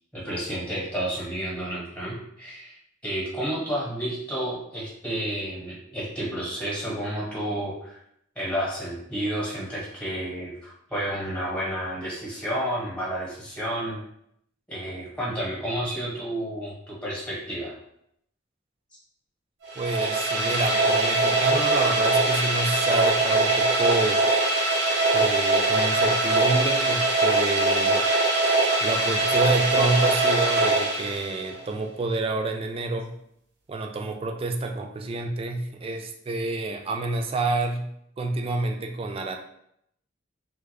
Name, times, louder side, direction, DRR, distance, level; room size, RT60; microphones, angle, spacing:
voice 1, 0.1-8.0 8.3-14.0 14.7-17.7, right 1 dB, 5° left, -7 dB, 1.2 m, -31 dB
sound 1, 19.7-31.6, right 2 dB, 60° right, 0.7 m, -22 dB
voice 2, 19.8-24.3 25.1-28.0 28.8-33.2 33.7-37.9 38.2-39.4, right 3 dB, 30° right, 4 dB, 0.3 m, -28 dB
3.3 x 2.4 x 3.3 m, 0.73 s
head